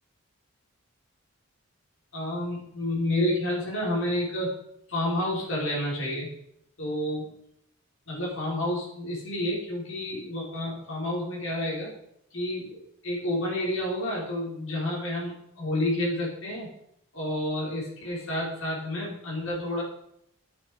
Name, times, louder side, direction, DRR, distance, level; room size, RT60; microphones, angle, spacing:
voice 1, 2.1-4.6 4.9-6.3 6.8-7.3 8.1-11.9 12.3-16.7 17.1-19.8, left 1 dB, 70° left, -4 dB, 5.1 m, -30 dB
10.5 x 8.9 x 5.3 m, 0.75 s
head